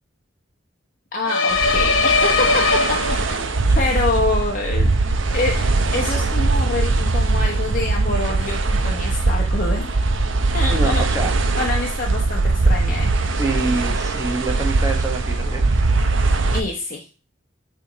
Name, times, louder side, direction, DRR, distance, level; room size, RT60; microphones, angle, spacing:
voice 1, 1.1-3.0 3.3-4.9 5.3-5.7 5.9-9.9 10.5-11.0 11.5-13.1 16.5-17.1, left 2 dB, 45° left, -1 dB, 1.0 m, -26 dB
sound 1, 1.3-3.6, left 4 dB, 80° left, 1.1 m, -19 dB
sound 2, 1.5-16.6, right 3 dB, 70° right, 0.7 m, -20 dB
voice 2, 10.7-11.3 13.4-15.8, right 2 dB, 15° right, 3 dB, 1.1 m, -26 dB
9.1 x 3.6 x 4.0 m, 0.34 s
head